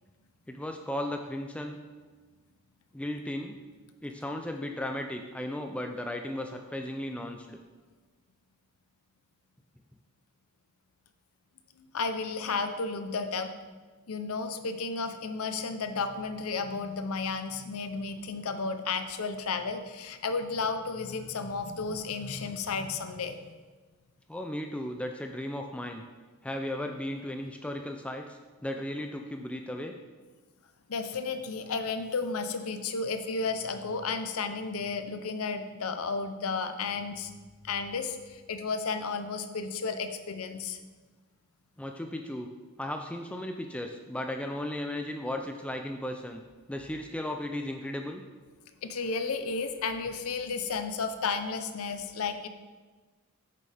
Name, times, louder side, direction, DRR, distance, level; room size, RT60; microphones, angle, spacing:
voice 1, 0.5-1.8 2.9-3.6 4.0-7.6 24.3-26.0 26.4-30.0 41.8-42.5 42.8-46.4 46.7-48.2, left 1 dB, 5° left, 4 dB, 0.3 m, -35 dB
voice 2, 11.8-13.5 14.1-23.5 30.9-37.3 37.6-40.8 48.8-52.5, left 4 dB, 70° left, 8 dB, 0.6 m, -33 dB
8.4 x 6.8 x 3.4 m, 1.3 s
head